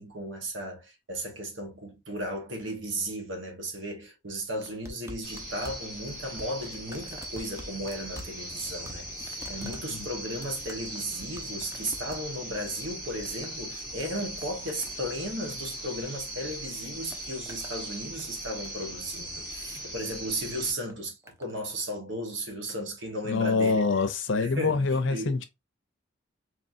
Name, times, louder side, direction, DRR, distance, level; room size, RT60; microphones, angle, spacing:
voice 1, 0.0-23.8 24.4-25.4, right 1 dB, 70° right, 1.3 m, -35 dB
sound 1, 4.6-16.5 16.8-17.8 18.2-18.9 19.8-20.1 20.9-21.6 22.4-22.5, equal, 15° right, 0.6 m, -48 dB
sound 2, 5.2-20.7, right 1 dB, 45° right, 2.0 m, -39 dB
voice 2, 23.2-25.4, left 4 dB, 70° left, 0.6 m, -25 dB
4.3 x 3.0 x 2.6 m
head